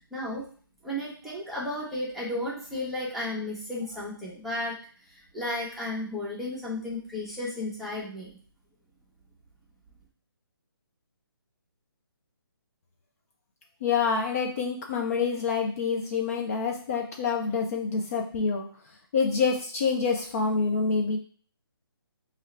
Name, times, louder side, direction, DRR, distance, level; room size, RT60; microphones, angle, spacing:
voice 1, 0.1-0.4 0.8-4.8 5.3-8.3, left 1 dB, ahead, -8 dB, 0.8 m, -33 dB
voice 2, 13.8-18.7 19.1-21.2, left 5 dB, 40° left, 1 dB, 0.6 m, -27 dB
4.6 x 2.5 x 3.2 m, 0.44 s
hypercardioid pair, 150°, 12 cm